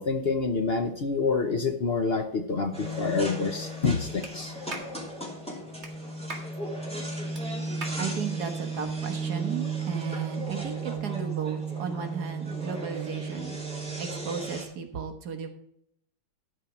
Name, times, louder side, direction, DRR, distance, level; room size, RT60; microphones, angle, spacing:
voice 1, 0.0-4.5, left 4 dB, 55° left, 6 dB, 0.7 m, -27 dB
sound 1, 2.7-14.6, right 3 dB, 5° left, 2.8 m, -34 dB
Clapping, 4.2-4.3 4.7-4.9 5.8-5.9 6.3-6.5 7.3-7.4 7.8-8.0, right 3 dB, 35° right, 2.1 m, -38 dB
voice 2, 8.0-13.6 14.0-15.5, right 6 dB, 55° right, 5 dB, 1.6 m, -35 dB
12.5 x 5.0 x 6.0 m, 0.72 s
omnidirectional pair, 2.1 m